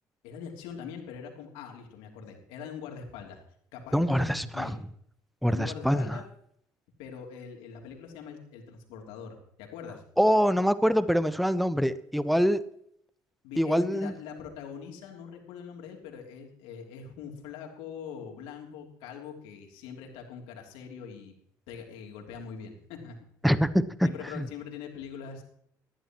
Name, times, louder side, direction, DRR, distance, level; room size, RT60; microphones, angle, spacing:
voice 1, 0.2-3.4 3.7-4.8 5.5-6.3 7.0-10.0 13.4-21.3 21.7-23.2 24.0-25.4, left 6 dB, 75° left, 2 dB, 3.3 m, -42 dB
voice 2, 3.9-4.7 5.4-6.2 10.2-12.6 13.6-14.1 23.4-24.1 24.3-24.5, equal, ahead, 13 dB, 1.1 m, -24 dB
20.5 x 13.5 x 3.1 m, 0.68 s
hypercardioid pair, 55°, 10 cm